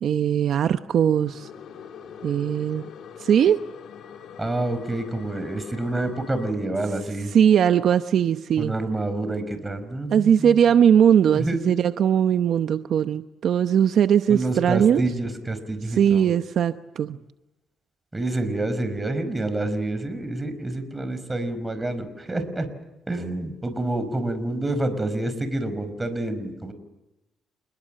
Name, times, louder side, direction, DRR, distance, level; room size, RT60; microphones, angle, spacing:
voice 1, 0.0-1.5 2.2-2.8 3.2-3.6 7.3-8.7 10.1-15.0 16.0-17.2, right 8 dB, 65° right, 10 dB, 0.8 m, -20 dB
sound 1, 1.1-6.5, left 7 dB, 70° left, 3.6 m, -43 dB
voice 2, 4.4-7.3 8.6-10.6 11.3-11.6 14.3-16.3 18.1-22.7 23.1-26.7, right 2 dB, 15° right, 10 dB, 5.1 m, -28 dB
28.5 x 21.0 x 7.6 m, 0.98 s
cardioid pair, 90°, 0 cm